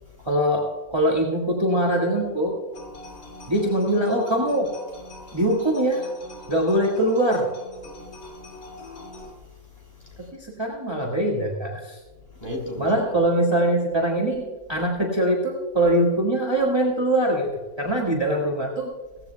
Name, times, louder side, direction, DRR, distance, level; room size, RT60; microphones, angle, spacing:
voice 1, 0.2-2.6 3.5-4.7 5.3-6.1 6.5-7.5 10.2-12.0 12.8-18.9, right 1 dB, 20° right, -2 dB, 1.8 m, -23 dB
sound 1, 2.7-9.3, left 2 dB, 90° left, 3.1 m, -43 dB
voice 2, 3.0-3.5 5.1-5.4 6.4-6.5 7.9-10.3 12.2-13.1, left 1 dB, 25° left, -1 dB, 4.4 m, -40 dB
18.0 x 15.5 x 2.3 m, 1.2 s
omnidirectional pair, 1.5 m